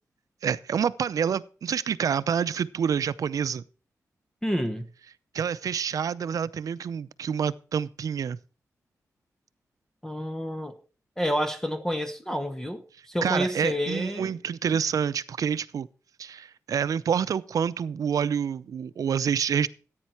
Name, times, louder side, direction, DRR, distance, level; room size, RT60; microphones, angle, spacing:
voice 1, 0.4-3.6 5.3-8.4 13.2-15.9 16.2-19.7, right 7 dB, 80° right, 0.6 m, -27 dB
voice 2, 4.4-4.8 10.0-10.8 11.2-12.8 13.1-14.3, equal, 10° left, 1.0 m, -29 dB
14.5 x 9.3 x 4.4 m
wide cardioid pair, 165°, 6 cm